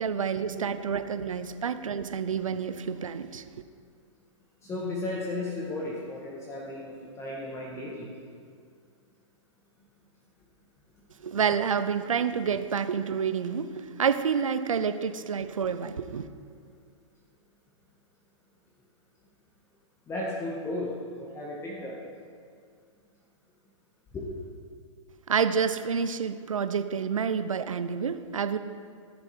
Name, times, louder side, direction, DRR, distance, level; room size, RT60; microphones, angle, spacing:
voice 1, 0.0-3.4 11.2-16.3 25.3-28.6, right 6 dB, 85° right, 11 dB, 0.6 m, -28 dB
voice 2, 4.6-8.1 20.1-22.0 24.1-24.4, left 2 dB, 15° left, -4 dB, 1.5 m, -35 dB
14.0 x 7.0 x 4.4 m, 2.1 s
hypercardioid pair, 120°, 17 cm